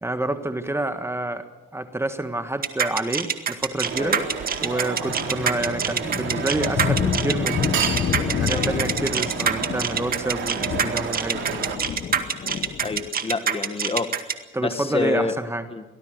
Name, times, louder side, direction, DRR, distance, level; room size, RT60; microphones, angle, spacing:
voice 1, 0.0-1.4 1.7-4.2 4.6-7.9 8.2-11.4 14.5-15.6, right 2 dB, 15° right, 9 dB, 1.5 m, -28 dB
sound 1, 2.6-14.3, right 7 dB, 45° right, 2.0 m, -25 dB
sound 2, 3.8-11.8, right 7 dB, 75° right, 3.0 m, -31 dB
sound 3, 4.0-4.4 4.6-13.1, left 7 dB, 55° left, 1.3 m, -29 dB
voice 2, 12.8-15.3 15.7-15.8, left 4 dB, 30° left, 9 dB, 1.9 m, -28 dB
24.0 x 18.0 x 6.6 m, 1.1 s
cardioid pair, 90°, 20 cm